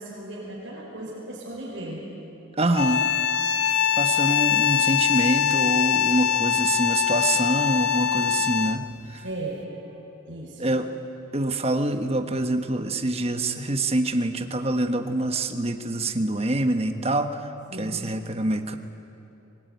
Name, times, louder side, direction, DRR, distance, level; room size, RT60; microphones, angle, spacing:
voice 1, 0.0-2.0 9.2-9.9 10.3-10.6 17.7-18.0, right 2 dB, 70° right, -6 dB, 5.2 m, -36 dB
voice 2, 2.6-3.0 3.9-9.2 10.6-10.9 11.3-17.5 17.8-18.7, right 2 dB, 30° right, 6 dB, 1.3 m, -25 dB
sound 1, 2.7-8.9, left 9 dB, 55° left, 0.8 m, -23 dB
24.0 x 20.0 x 9.4 m, 2.9 s
head